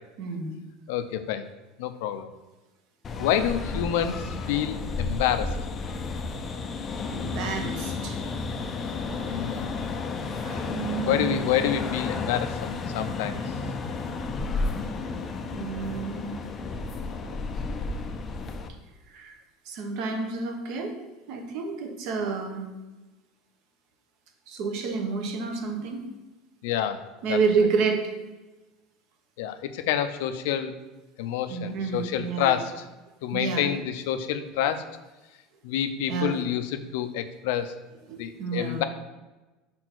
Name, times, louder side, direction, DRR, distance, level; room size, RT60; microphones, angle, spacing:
voice 1, 0.2-0.5 7.1-8.2 9.3-9.4 10.4-11.4 15.5-16.4 19.1-19.3 19.6-20.9 21.3-22.6 24.5-26.0 27.2-28.0 31.5-32.6 33.3-33.6 36.1-36.4 38.1-38.8, right 5 dB, 55° right, 3 dB, 1.2 m, -29 dB
voice 2, 0.9-1.5 1.8-2.3 3.2-5.6 9.3-9.7 11.1-13.4 26.6-27.0 27.3-27.4 29.4-30.7 31.2-32.8 33.2-34.9 35.6-37.7 38.2-38.8, left 10 dB, 75° left, 9 dB, 0.6 m, -28 dB
sound 1, 3.0-18.7, left 3 dB, 25° left, 0.5 m, -32 dB
5.6 x 4.4 x 6.1 m, 1.1 s
cardioid pair, 165°, 0 cm